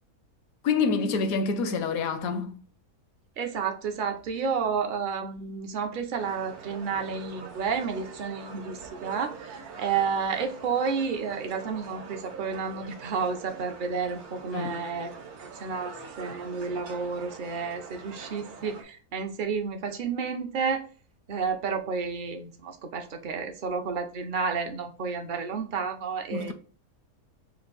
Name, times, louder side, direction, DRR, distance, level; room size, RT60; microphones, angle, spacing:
voice 1, 0.6-2.6 14.5-14.8 26.3-26.5, left 4 dB, 75° left, 1.1 m, -27 dB
voice 2, 3.4-15.1 15.6-20.9 21.3-26.5, right 5 dB, 60° right, 0.5 m, -31 dB
sound 1, 6.2-18.8, right 5 dB, 85° right, 1.3 m, -44 dB
4.3 x 2.5 x 3.9 m
omnidirectional pair, 1.5 m